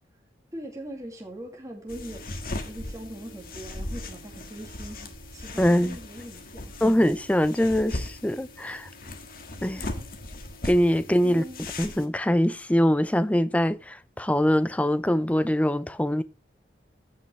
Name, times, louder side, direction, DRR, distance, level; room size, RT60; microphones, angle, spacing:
voice 1, 0.5-2.4 2.6-6.8 9.0-9.2 9.7-10.4 11.2-11.6, right 1 dB, 20° right, 2.3 m, -41 dB
sound 1, 1.9-12.1, left 2 dB, 50° left, 1.6 m, -38 dB
voice 2, 5.6-6.0 6.8-8.9 9.6-9.9 10.6-11.4 11.8-16.2, equal, 10° left, 0.5 m, -23 dB
15.0 x 5.5 x 3.2 m
head